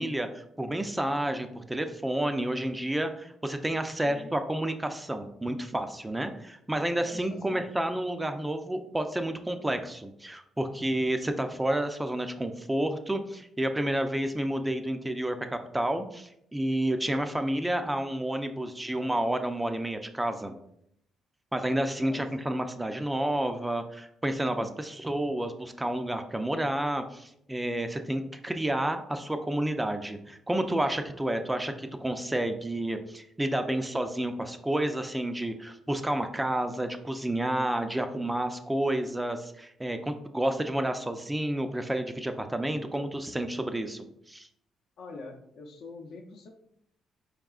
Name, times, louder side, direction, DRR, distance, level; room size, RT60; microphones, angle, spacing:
voice 1, 0.0-20.5 21.5-44.5, right 1 dB, 10° right, 7 dB, 0.4 m, -30 dB
voice 2, 4.0-4.4 7.0-7.8 22.0-22.3 45.0-46.5, left 3 dB, 70° left, 2 dB, 0.6 m, -45 dB
4.7 x 3.6 x 2.3 m, 0.75 s
cardioid pair, 90°, 0 cm